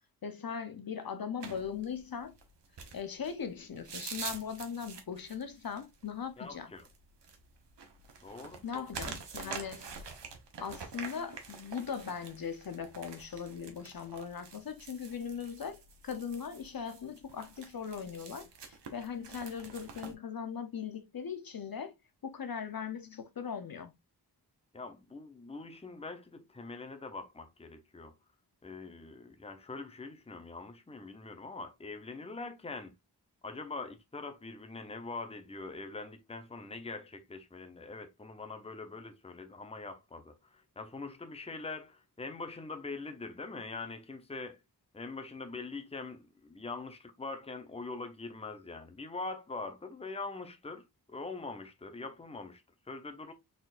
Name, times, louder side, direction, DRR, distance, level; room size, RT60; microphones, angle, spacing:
voice 1, 0.2-2.4 2.9-6.7 8.6-10.0 10.6-22.0 22.2-23.9, left 7 dB, 60° left, 0.7 m, -39 dB
sound 1, 1.4-20.1, right 5 dB, 90° right, 1.0 m, -47 dB
voice 2, 6.4-6.9 8.2-8.8 9.3-9.6 24.7-28.1 28.6-32.9 33.4-44.6 44.9-53.3, left 3 dB, 15° left, 0.7 m, -43 dB
4.3 x 3.8 x 2.4 m
wide cardioid pair, 105°, 41 cm